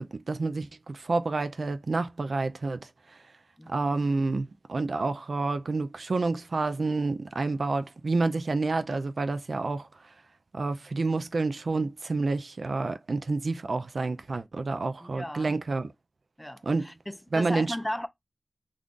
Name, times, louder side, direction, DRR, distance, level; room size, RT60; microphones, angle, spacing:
voice 1, 0.0-2.9 3.7-9.9 10.5-15.9 16.6-16.9 17.3-17.8, right 3 dB, 70° right, 0.4 m, -29 dB
voice 2, 3.6-4.0 15.0-15.6 16.4-18.1, left 1 dB, 10° left, 0.4 m, -36 dB
3.6 x 2.4 x 2.4 m
wide cardioid pair, 70°, 0 cm